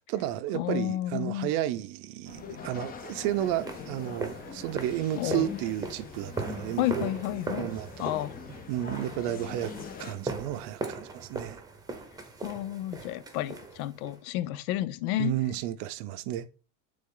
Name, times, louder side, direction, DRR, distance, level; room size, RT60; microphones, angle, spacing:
voice 1, 0.0-8.2 8.7-9.7 10.0-11.6 15.2-16.5, right 12 dB, 60° right, 0.6 m, -32 dB
voice 2, 0.5-1.5 5.2-5.5 6.8-7.7 8.0-8.4 12.4-15.3, left 14 dB, 85° left, 0.6 m, -31 dB
sound 1, 2.2-10.1, left 6 dB, 20° left, 0.6 m, -43 dB
sound 2, 3.1-14.2, right 3 dB, 10° right, 0.8 m, -40 dB
8.6 x 3.5 x 3.8 m
supercardioid pair, 145°, 41 cm